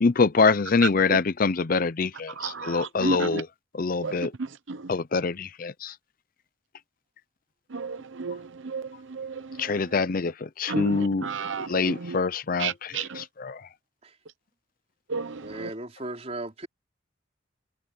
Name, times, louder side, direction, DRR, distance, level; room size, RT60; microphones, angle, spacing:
voice 1, 0.0-3.5 3.8-4.3 4.9-5.9 9.6-10.3 10.6-11.2 11.7-13.6, left 4 dB, 45° left, 0.5 m, -25 dB
voice 2, 2.4-3.4 4.0-4.1 4.7-4.8 7.7-8.4 8.7-8.8 9.2-9.3 10.7-12.2 12.6-13.2 15.1-15.7, right 4 dB, 75° right, 0.8 m, -32 dB
voice 3, 15.4-16.7, right 2 dB, 35° right, 4.0 m, -36 dB
head